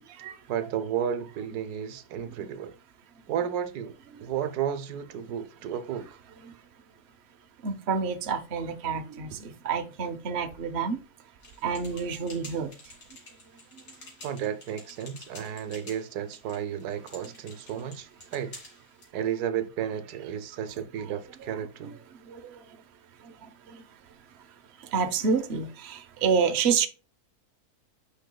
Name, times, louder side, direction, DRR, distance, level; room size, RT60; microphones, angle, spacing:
voice 1, 0.5-2.7 3.3-3.9 4.2-6.2 14.2-18.6 19.1-21.9, right 9 dB, 80° right, 1.2 m, -32 dB
voice 2, 7.6-11.0 11.6-12.7 13.7-13.8 21.1-22.0 22.2-22.8 23.2-23.8 24.8-26.9, right 6 dB, 50° right, 0.9 m, -29 dB
sound 1, 11.4-19.1, left 2 dB, 90° left, 2.9 m, -49 dB
9.1 x 5.3 x 2.2 m
omnidirectional pair, 1.6 m